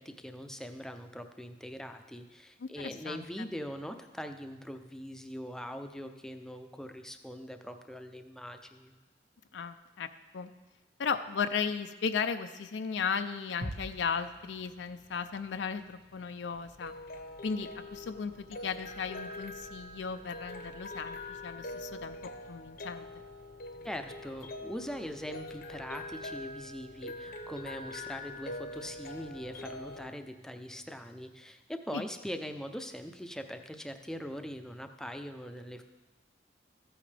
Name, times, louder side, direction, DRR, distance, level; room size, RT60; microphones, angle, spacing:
voice 1, 0.0-9.0 23.8-35.8, equal, 5° left, 6 dB, 0.5 m, -42 dB
voice 2, 2.6-3.5 9.5-10.5 11.0-16.9 17.4-23.1 31.9-32.0, left 6 dB, 85° left, 9 dB, 0.4 m, -36 dB
sound 1, 13.6-31.8, equal, 65° right, 1.2 m, -53 dB
sound 2, 16.6-30.1, left 2 dB, 55° left, 0.8 m, -44 dB
14.0 x 8.8 x 3.4 m, 1.2 s
head